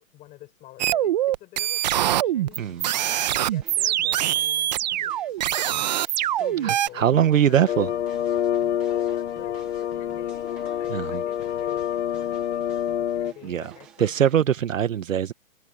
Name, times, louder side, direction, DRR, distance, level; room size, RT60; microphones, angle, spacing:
voice 1, 0.1-2.6 3.1-7.8 8.5-8.6 8.9-14.2, left 16 dB, 20° left, 6.3 m, -47 dB
sound 1, 0.8-6.9, right 12 dB, 30° right, 1.0 m, -24 dB
sound 2, 2.5-14.4, right 8 dB, 5° right, 0.5 m, -52 dB
voice 2, 6.6-7.9 10.9-11.2 13.4-13.7 14.0-15.3, right 9 dB, 65° right, 1.3 m, -22 dB
sound 3, 7.7-13.3, left 10 dB, 55° left, 0.8 m, -27 dB
hypercardioid pair, 165°, 41 cm